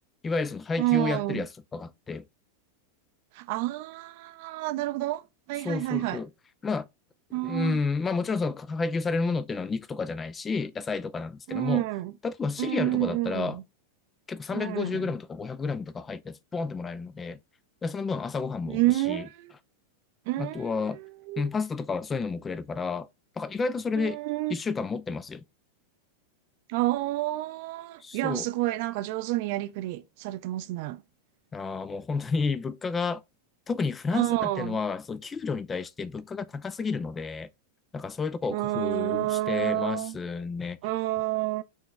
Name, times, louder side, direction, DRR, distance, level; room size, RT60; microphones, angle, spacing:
voice 1, 0.2-2.3 5.6-6.3 6.6-6.9 7.4-11.8 12.2-13.6 14.3-17.4 17.8-19.3 20.4-21.0 21.4-23.1 23.4-24.2 24.5-25.4 28.0-28.5 31.5-33.2 33.7-37.5 37.9-40.8, left 4 dB, 20° left, 0.3 m, -31 dB
voice 2, 0.8-1.4 3.4-5.2 5.5-6.2 7.3-7.8 11.5-12.1 12.6-13.6 14.5-15.0 18.7-19.5 20.3-21.0 21.3-21.5 24.0-24.6 26.7-31.0 34.1-34.8 38.5-40.2 40.8-41.6, right 17 dB, 50° right, 0.5 m, -29 dB
4.5 x 2.9 x 3.3 m
figure-of-eight pair, 90°, 0 cm